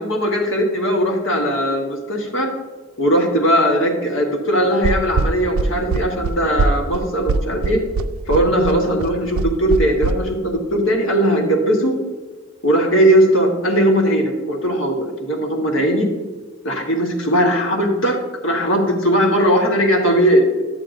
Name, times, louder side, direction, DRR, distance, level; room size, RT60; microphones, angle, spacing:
voice 1, 0.0-2.5 3.0-7.8 8.3-12.0 12.6-16.1 16.6-20.6, equal, 70° left, 2 dB, 1.3 m, -18 dB
sound 1, 4.8-10.1, right 4 dB, 85° right, 0.4 m, -21 dB
9.5 x 8.9 x 2.6 m, 1.3 s
head